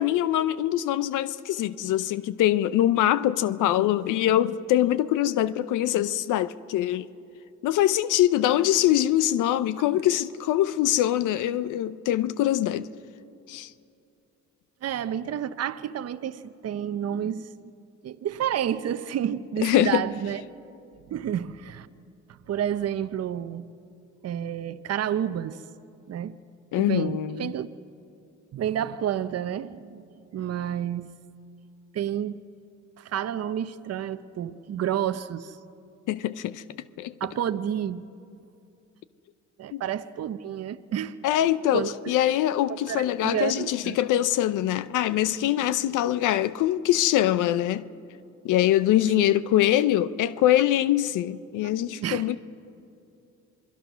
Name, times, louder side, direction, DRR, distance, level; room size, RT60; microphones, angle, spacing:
voice 1, 0.0-7.1 7.6-12.9 13.5-13.7 19.6-20.0 26.7-27.5 36.1-36.6 37.0-37.1 39.7-39.8 41.2-47.9 48.4-52.4, left 12 dB, 85° left, 0.7 m, -23 dB
voice 2, 14.8-17.5 18.0-20.4 21.1-21.9 22.3-23.7 24.2-25.6 26.1-26.4 26.8-27.7 28.5-30.0 30.3-31.1 31.9-32.4 33.0-35.6 37.2-38.0 39.6-41.1 41.7-42.1 42.9-44.0 49.2-49.3 52.0-52.4, right 10 dB, 55° right, 0.8 m, -30 dB
27.5 x 20.5 x 6.3 m
cardioid pair, 90°, 30 cm